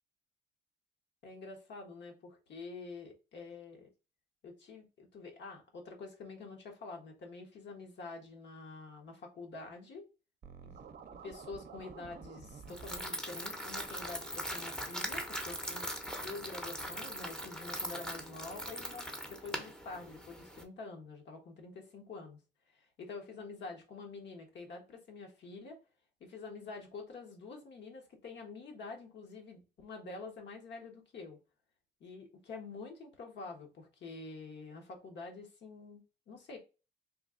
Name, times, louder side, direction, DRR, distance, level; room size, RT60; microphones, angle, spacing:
voice 1, 1.2-3.9 4.4-10.1 10.6-10.7 11.1-15.9 16.2-22.4 22.7-25.8 26.2-31.4 32.0-36.6, left 3 dB, 60° left, 1.2 m, -47 dB
Scratching (performance technique), 10.4-13.0, right 6 dB, 50° right, 0.6 m, -50 dB
sound 1, 12.7-20.6, equal, 5° left, 0.8 m, -41 dB
3.1 x 2.3 x 3.7 m
cardioid pair, 90°, 20 cm